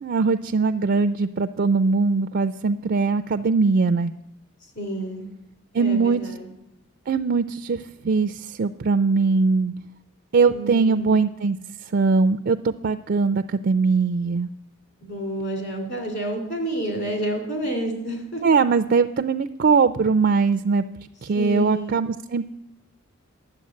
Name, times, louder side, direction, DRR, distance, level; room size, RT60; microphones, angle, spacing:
voice 1, 0.0-4.1 5.7-6.2 7.1-7.8 8.0-9.7 10.3-11.6 11.9-14.5 18.4-20.8 21.3-22.5, right 4 dB, 45° right, 10 dB, 0.4 m, -21 dB
voice 2, 4.7-5.3 5.8-6.5 10.5-11.2 15.0-18.4 21.3-22.0, right 1 dB, 50° left, 4 dB, 3.1 m, -29 dB
11.0 x 7.7 x 8.5 m, 0.86 s
head